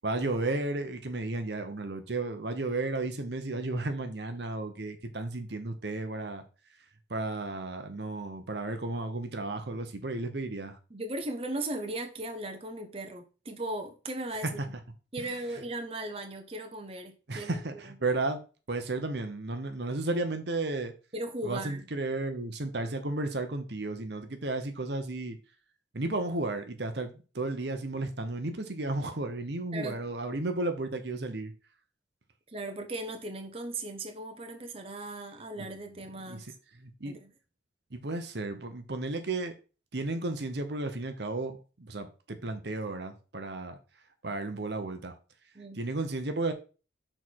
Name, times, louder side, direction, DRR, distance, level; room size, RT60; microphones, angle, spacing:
voice 1, 0.0-6.4 7.1-10.8 17.3-18.4 18.7-20.9 21.4-25.4 25.9-31.5 35.6-35.7 36.3-36.5 36.8-37.1 37.9-39.5 39.9-43.8 44.2-45.1 45.7-46.5, right 2 dB, 60° right, 0.9 m, -33 dB
voice 2, 10.9-14.7 15.1-18.0 21.1-21.8 29.7-30.0 32.5-36.5 37.1-37.3 45.5-45.8, right 1 dB, 30° right, 1.0 m, -37 dB
6.4 x 4.5 x 4.5 m
head